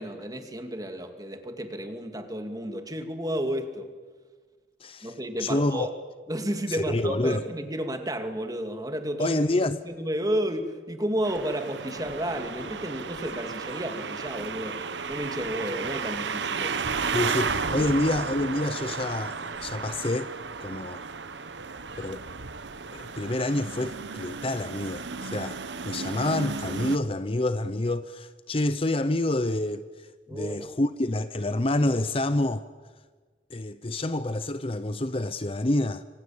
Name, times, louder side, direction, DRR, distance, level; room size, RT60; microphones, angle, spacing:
voice 1, 0.0-3.9 5.0-5.9 6.3-9.4 9.8-14.8 15.1-16.9 17.8-17.9 30.3-30.7, right 1 dB, 20° right, 2.5 m, -32 dB
voice 2, 4.8-5.1 5.4-5.9 6.7-7.4 9.2-9.8 17.1-20.3 20.6-21.0 22.0-22.2 22.9-25.6 25.8-29.8 30.3-32.6 33.5-36.0, left 1 dB, 30° left, 0.8 m, -27 dB
sound 1, 11.2-27.0, right 5 dB, 90° right, 1.2 m, -33 dB
26.0 x 25.0 x 8.8 m
head